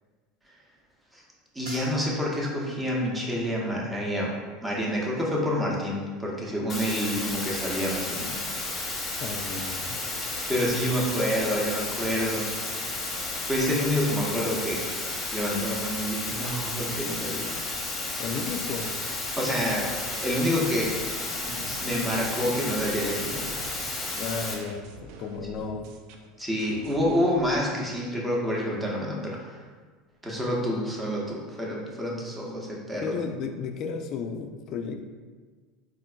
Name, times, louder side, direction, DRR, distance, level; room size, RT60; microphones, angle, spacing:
voice 1, 1.5-4.4 4.6-8.5 10.5-12.5 13.5-14.9 15.3-17.5 19.4-21.0 21.4-23.5 26.4-29.6 30.2-33.2, equal, 10° right, -3 dB, 0.7 m, -28 dB
sound 1, 1.6-6.2 6.5-7.1 7.7-8.0, left 1 dB, 90° right, 1.1 m, -49 dB
sound 2, 6.7-24.5, left 2 dB, 25° left, 0.8 m, -32 dB
voice 2, 9.2-10.1 18.2-19.0 24.2-25.9 33.0-35.1, left 5 dB, 50° left, 5 dB, 0.3 m, -33 dB
sound 3, 19.6-27.6, right 3 dB, 65° right, 0.3 m, -47 dB
3.8 x 2.4 x 2.2 m, 1.5 s
hypercardioid pair, 95°, 0 cm